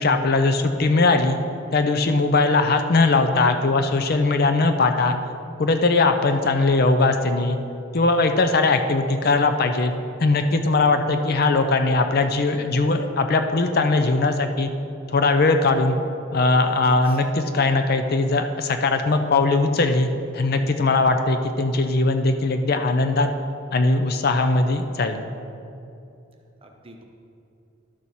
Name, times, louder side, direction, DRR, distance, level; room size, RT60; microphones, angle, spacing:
voice 1, 0.0-1.4 1.7-5.2 5.6-7.6 7.9-9.9 10.2-14.7 15.1-16.0 16.3-23.3 23.7-25.2, left 3 dB, 50° left, 7 dB, 0.5 m, -20 dB
voice 2, 16.6-17.2 26.6-27.0, right 2 dB, 25° right, 3 dB, 0.8 m, -44 dB
11.0 x 6.3 x 4.1 m, 2.6 s
head